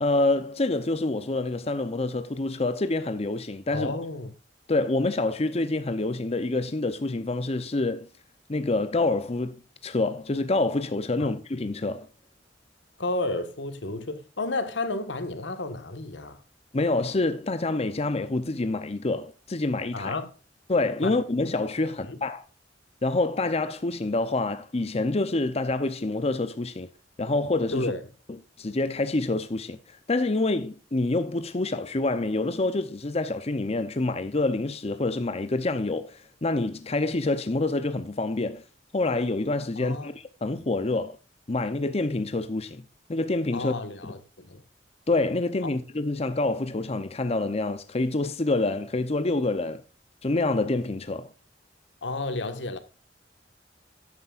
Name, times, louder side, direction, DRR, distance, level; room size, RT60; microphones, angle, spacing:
voice 1, 0.0-3.9 4.7-8.1 8.5-12.1 16.7-20.1 20.7-22.4 23.0-26.9 27.2-27.9 28.6-29.8 30.1-38.6 38.9-41.2 41.5-42.8 43.1-43.8 44.0-44.1 45.1-49.8 50.2-51.3, left 2 dB, 35° left, 0.7 m, -27 dB
voice 2, 3.7-4.3 11.2-11.3 13.0-16.4 19.9-20.3 21.0-21.2 22.1-22.2 27.7-28.0 39.8-40.1 43.5-44.6 45.6-45.7 52.0-52.8, left 2 dB, 90° left, 1.6 m, -31 dB
13.0 x 9.7 x 2.5 m
head